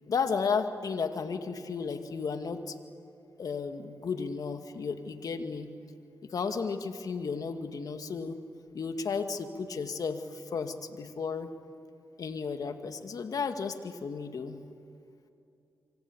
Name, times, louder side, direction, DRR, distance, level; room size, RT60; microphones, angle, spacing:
voice 1, 0.1-2.8 3.4-5.7 6.2-8.4 8.7-11.5 12.2-14.6, left 5 dB, 65° left, 7 dB, 2.1 m, -33 dB
25.5 x 24.5 x 8.6 m, 2.6 s
supercardioid pair, 50°, 7 cm